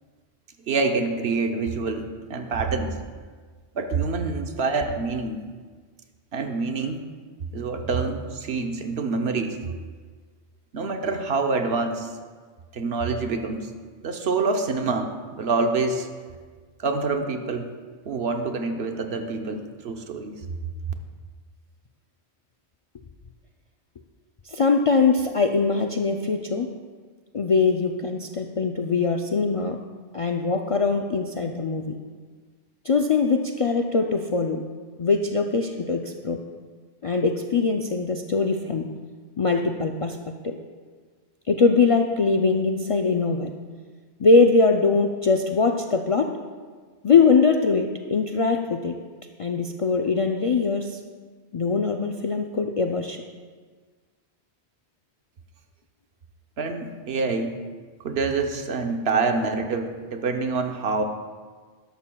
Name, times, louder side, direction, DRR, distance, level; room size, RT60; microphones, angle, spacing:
voice 1, 0.7-3.0 3.7-5.4 6.3-7.0 7.5-9.6 10.7-12.1 12.7-13.7 14.0-16.1 16.8-17.7 18.1-20.4 56.6-57.6 58.0-61.0, right 4 dB, 70° right, 5 dB, 1.0 m, -26 dB
voice 2, 24.5-26.7 27.3-29.8 30.1-31.9 32.8-34.6 35.0-36.4 37.0-38.8 39.4-40.2 40.4-40.6 41.5-43.5 44.2-46.3 47.0-49.0 49.4-51.0 51.5-53.2, left 4 dB, 50° left, 3 dB, 0.4 m, -22 dB
13.0 x 11.5 x 2.3 m, 1.5 s
omnidirectional pair, 1.1 m